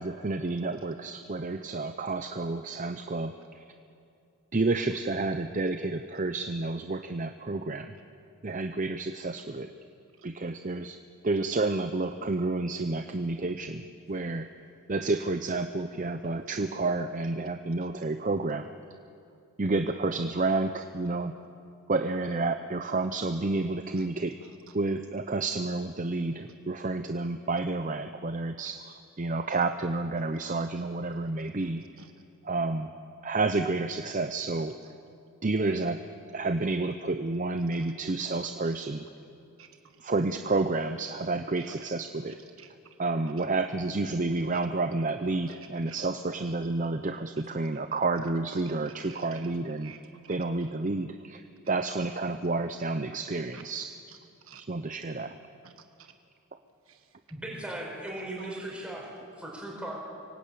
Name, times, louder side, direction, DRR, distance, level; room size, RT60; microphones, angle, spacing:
voice 1, 0.0-3.6 4.5-7.9 8.4-9.7 10.2-11.0 11.2-13.8 14.1-14.5 14.9-18.7 19.6-21.4 21.9-24.4 24.7-31.8 32.4-32.9 33.2-34.8 35.4-36.0 36.3-39.0 40.0-42.4 43.0-49.9 50.3-54.0 54.7-55.4, right 3 dB, 35° right, 8 dB, 0.6 m, -30 dB
voice 2, 24.4-24.7 31.2-31.4 32.0-32.1 37.7-37.9 38.3-38.8 39.6-40.0 41.6-41.7 42.6-42.7 44.4-44.6 45.5-45.6 45.9-46.0 46.4-46.5 49.0-50.0 50.6-50.7 51.9-52.1 53.5-53.6 54.1-54.2 54.4-54.7 55.6-56.1 56.9-57.1 58.4-58.6, right 6 dB, 70° right, 6 dB, 1.3 m, -52 dB
voice 3, 57.3-59.1 59.4-60.0, right 1 dB, 5° right, -2 dB, 4.9 m, -37 dB
24.5 x 17.5 x 8.6 m, 2.5 s
head